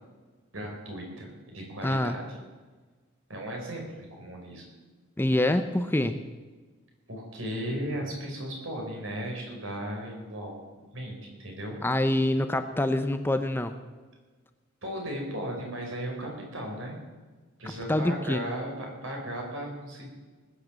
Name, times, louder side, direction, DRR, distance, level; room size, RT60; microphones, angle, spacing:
voice 1, 0.5-2.2 3.3-3.9 4.2-4.6 7.1-10.6 10.9-11.8 14.8-17.0 17.6-20.1, equal, 70° right, 0 dB, 5.2 m, -36 dB
voice 2, 1.8-2.2 5.2-6.2 11.8-13.8 17.9-18.4, left 1 dB, 10° left, 9 dB, 0.6 m, -25 dB
20.0 x 8.5 x 7.5 m, 1.3 s
head